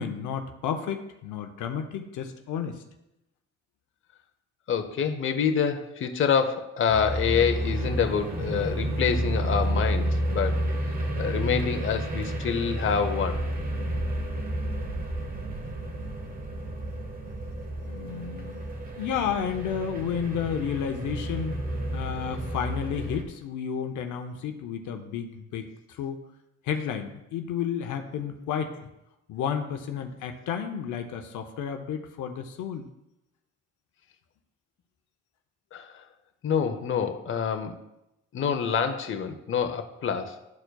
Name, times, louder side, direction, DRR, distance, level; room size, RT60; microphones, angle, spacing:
voice 1, 0.0-2.8 17.8-18.7 19.0-21.6 21.9-26.2 26.6-28.7 29.3-32.9, left 7 dB, 80° left, 6 dB, 0.7 m, -32 dB
voice 2, 4.7-10.6 11.2-13.4 35.7-35.9 36.4-37.8 38.3-40.4, left 7 dB, 45° left, 7 dB, 0.7 m, -26 dB
sound 1, 6.9-23.2, right 1 dB, 30° right, 1.1 m, -31 dB
11.5 x 4.4 x 2.3 m, 0.88 s
cardioid pair, 90°, 30 cm